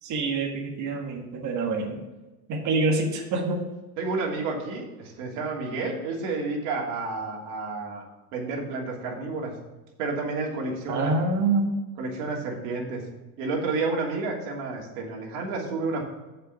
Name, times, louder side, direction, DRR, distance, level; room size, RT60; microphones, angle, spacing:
voice 1, 0.0-2.0 2.5-3.7 10.9-11.7, right 3 dB, 40° right, 1 dB, 1.7 m, -26 dB
voice 2, 4.0-8.0 8.3-9.5 10.0-11.1 12.0-13.0 13.4-16.0, right 3 dB, 65° right, -1 dB, 3.0 m, -30 dB
7.5 x 5.7 x 6.8 m, 1.1 s
supercardioid pair, 130°, 46 cm